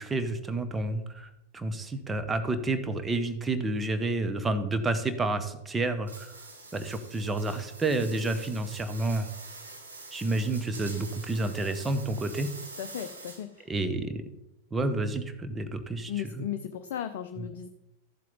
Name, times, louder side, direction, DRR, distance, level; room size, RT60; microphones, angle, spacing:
voice 1, 0.0-6.3 6.7-9.3 10.1-12.5 13.7-14.2 14.7-16.1 16.4-16.5, right 2 dB, 15° right, 9 dB, 1.0 m, -30 dB
sound 1, 6.1-13.6, right 3 dB, 75° right, 1.7 m, -45 dB
voice 2, 12.8-13.7 16.1-17.7, left 10 dB, 55° left, 8 dB, 0.6 m, -36 dB
13.0 x 7.5 x 4.0 m, 0.91 s
figure-of-eight pair, 90°, 0 cm